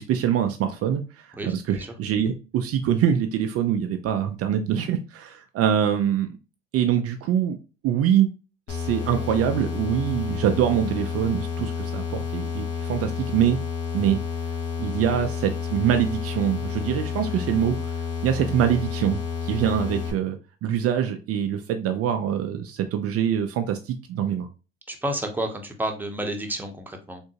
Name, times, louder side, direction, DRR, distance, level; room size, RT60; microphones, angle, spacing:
voice 1, 0.0-6.3 6.7-7.6 7.8-8.3 8.7-13.6 13.9-14.2 14.8-17.7 18.2-24.5, right 9 dB, 50° right, 6 dB, 0.5 m, -24 dB
voice 2, 1.3-1.9 24.9-27.2, right 1 dB, 5° right, 3 dB, 0.9 m, -30 dB
sound 1, 8.7-20.1, left 6 dB, 50° left, 1.4 m, -30 dB
3.5 x 2.6 x 2.8 m, 0.32 s
hypercardioid pair, 65°, 31 cm